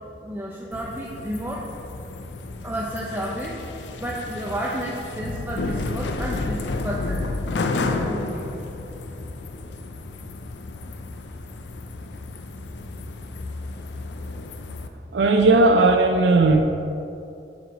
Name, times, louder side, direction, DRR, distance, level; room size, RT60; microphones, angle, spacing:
voice 1, 0.2-1.7 2.6-7.3 7.8-8.7 12.8-13.1, right 1 dB, 10° right, -4 dB, 0.5 m, -32 dB
sound 1, 0.7-14.9, left 3 dB, 85° left, 0.5 m, -32 dB
voice 2, 15.1-16.6, right 3 dB, 90° right, 4 dB, 0.4 m, -16 dB
7.1 x 4.6 x 4.9 m, 2.7 s
head